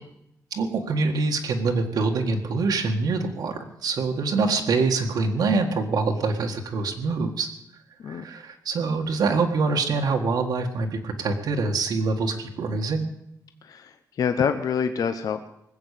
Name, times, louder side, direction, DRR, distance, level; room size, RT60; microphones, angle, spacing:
voice 1, 0.5-7.5 8.1-13.1, right 4 dB, 75° right, 2 dB, 1.7 m, -25 dB
voice 2, 13.6-15.5, left 7 dB, 65° left, 8 dB, 0.8 m, -26 dB
20.0 x 8.1 x 8.4 m, 0.79 s
wide cardioid pair, 180°, 7 cm